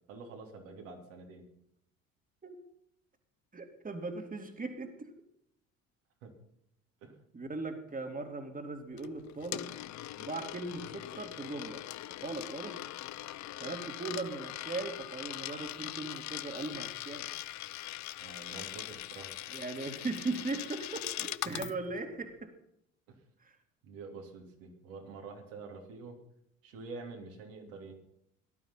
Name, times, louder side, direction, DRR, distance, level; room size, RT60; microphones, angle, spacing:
voice 1, 0.1-1.5 6.2-6.3 7.0-7.2 18.2-19.4 21.5-21.7 23.1-23.2 23.8-26.2 26.6-27.9, right 4 dB, 70° right, 1 dB, 3.4 m, -47 dB
voice 2, 3.5-5.1 7.3-9.8 10.2-11.8 12.2-12.9 13.6-17.3 19.5-22.5 23.4-23.5, right 3 dB, 20° right, 5 dB, 2.5 m, -39 dB
Coin (dropping), 9.0-21.7, left 15 dB, 45° left, 0.7 m, -41 dB
19.0 x 12.0 x 5.7 m, 0.76 s
hypercardioid pair, 55°, 40 cm